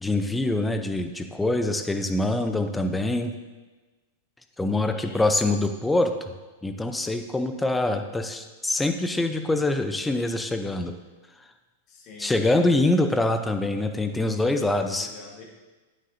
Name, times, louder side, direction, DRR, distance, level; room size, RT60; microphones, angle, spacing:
voice 1, 0.0-3.4 4.6-6.3 6.6-10.9 12.2-15.1, left 2 dB, 10° left, 7 dB, 0.6 m, -24 dB
voice 2, 4.7-5.2 11.9-12.5 15.0-15.4, left 4 dB, 40° left, -1 dB, 1.8 m, -45 dB
9.2 x 6.4 x 2.7 m, 1.2 s
hypercardioid pair, 120°, 0 cm